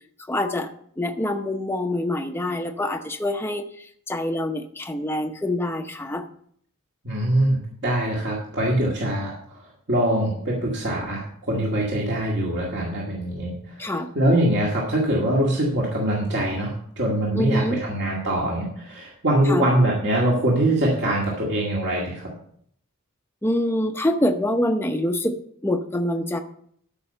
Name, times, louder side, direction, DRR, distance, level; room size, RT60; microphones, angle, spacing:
voice 1, 0.3-6.3 13.8-14.1 17.3-17.8 19.5-19.7 23.4-25.4 25.6-26.4, left 1 dB, 10° left, 5 dB, 0.7 m, -25 dB
voice 2, 7.0-9.6 9.9-22.3, right 1 dB, 55° right, -3 dB, 2.0 m, -23 dB
13.0 x 5.5 x 5.6 m, 0.64 s
head